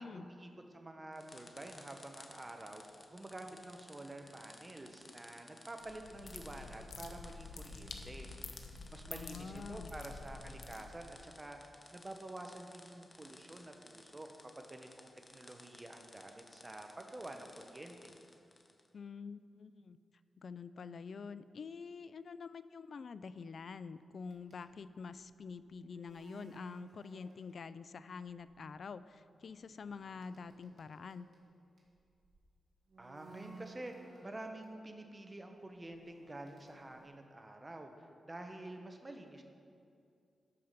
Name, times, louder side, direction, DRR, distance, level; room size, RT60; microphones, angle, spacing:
voice 1, 0.0-2.8 3.1-8.3 8.9-18.1 33.0-39.4, right 1 dB, 25° right, 4 dB, 1.1 m, -49 dB
sound 1, 1.1-18.9, left 2 dB, 25° left, 0.8 m, -58 dB
sound 2, 5.8-11.2, left 4 dB, 90° left, 0.7 m, -49 dB
voice 2, 9.1-9.9 18.9-20.0 20.4-31.3, left 5 dB, 65° left, 14 dB, 0.3 m, -47 dB
sound 3, 24.3-27.9 28.2-28.6 29.3-32.4 32.9-34.8 35.4-37.1, right 4 dB, 60° right, 1.9 m, -58 dB
12.5 x 5.0 x 5.7 m, 2.4 s
cardioid pair, 75°, 0 cm